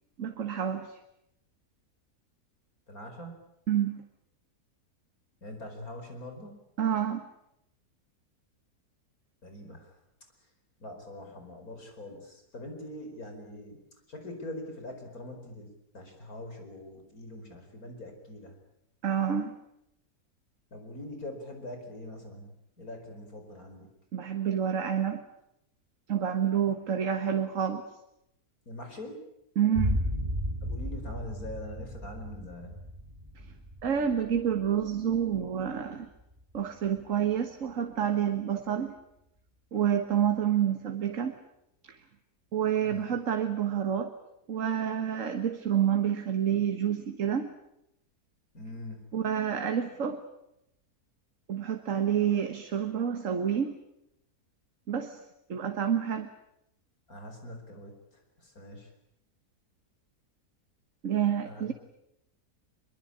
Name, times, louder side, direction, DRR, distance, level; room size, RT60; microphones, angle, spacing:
voice 1, 0.2-1.0 3.7-4.0 6.8-7.3 19.0-19.5 24.1-25.2 26.1-27.8 29.6-30.0 33.8-36.1 36.5-38.9 39.7-41.4 41.9-42.0 42.5-44.1 44.5-47.5 49.1-50.2 51.5-53.8 54.9-55.2 55.5-56.3 61.0-61.7, right 9 dB, 55° right, 7 dB, 1.7 m, -28 dB
voice 2, 2.9-3.4 5.4-6.5 9.4-9.9 10.8-13.8 14.1-15.7 15.9-18.6 20.7-23.9 28.7-29.2 30.6-32.8 42.8-43.1 48.5-49.1 57.1-58.9 61.4-61.7, left 1 dB, 65° left, 5 dB, 5.3 m, -43 dB
sound 1, 29.7-37.1, equal, 20° right, 3.5 m, -35 dB
24.5 x 22.5 x 8.6 m, 0.81 s
omnidirectional pair, 1.7 m